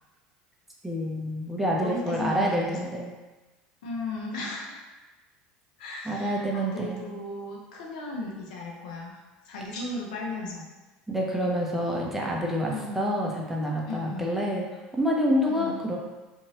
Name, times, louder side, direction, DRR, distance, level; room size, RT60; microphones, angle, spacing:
voice 1, 0.8-3.1 6.1-7.0 11.1-14.7 14.9-16.0, equal, 5° right, -2 dB, 0.6 m, -27 dB
voice 2, 1.8-2.9 3.8-4.8 5.8-9.2 9.4-10.7 12.7-13.1 13.9-14.4 15.5-15.9, left 2 dB, 85° left, -2 dB, 0.7 m, -36 dB
2.9 x 2.7 x 2.8 m, 1.2 s
supercardioid pair, 100°, 4 cm